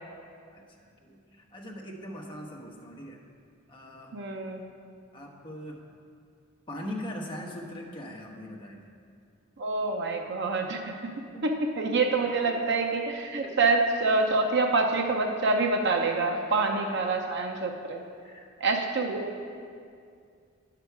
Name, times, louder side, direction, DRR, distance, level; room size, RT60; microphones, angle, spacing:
voice 1, 0.5-3.2 3.7-4.2 5.1-5.9 6.7-9.0 11.3-11.4 12.4-12.5 13.4-13.5 16.3-16.5 16.9-17.0 18.2-18.5, equal, 25° left, -1 dB, 1.0 m, -41 dB
voice 2, 4.1-4.6 9.6-10.9 11.4-18.0 18.6-19.4, right 3 dB, 55° right, 3 dB, 0.6 m, -26 dB
9.7 x 6.8 x 4.6 m, 2.3 s
head